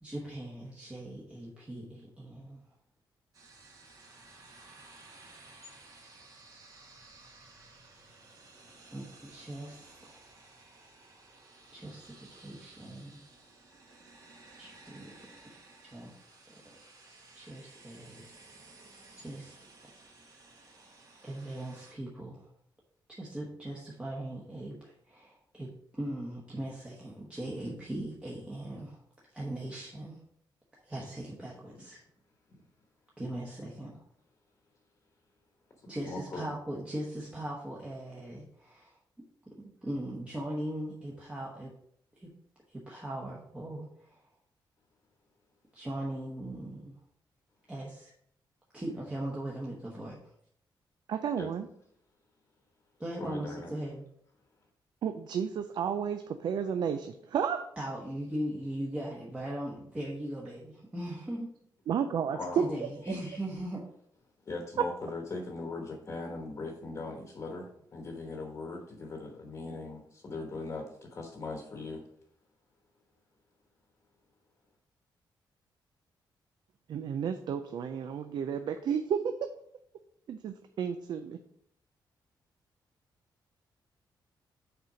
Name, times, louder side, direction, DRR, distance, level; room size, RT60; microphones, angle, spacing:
voice 1, 0.0-2.6 8.9-10.2 11.7-13.2 14.6-15.1 15.8-16.1 16.6-16.8 17.1-18.3 19.1-19.6 20.7-20.9 21.2-22.5 23.1-29.0 29.3-30.2 30.8-32.0 33.2-33.9 35.9-39.0 39.8-41.7 42.2-42.3 42.7-44.2 45.7-47.0 47.7-48.1 48.7-50.3 53.0-54.0 57.8-61.5 62.6-63.8, right 1 dB, 15° right, -4 dB, 1.1 m, -39 dB
sound 1, 3.3-21.9, right 3 dB, 45° right, 1.6 m, -55 dB
voice 2, 36.0-36.5 51.4-51.5 53.2-53.7 62.3-62.7 63.1-63.4 64.4-72.0, left 3 dB, 35° left, 2 dB, 1.2 m, -40 dB
voice 3, 51.1-51.7 55.0-57.7 61.9-62.6 76.9-79.5 80.3-81.4, right 7 dB, 60° right, 8 dB, 0.4 m, -32 dB
6.7 x 4.3 x 4.9 m, 0.70 s
wide cardioid pair, 145°, 8 cm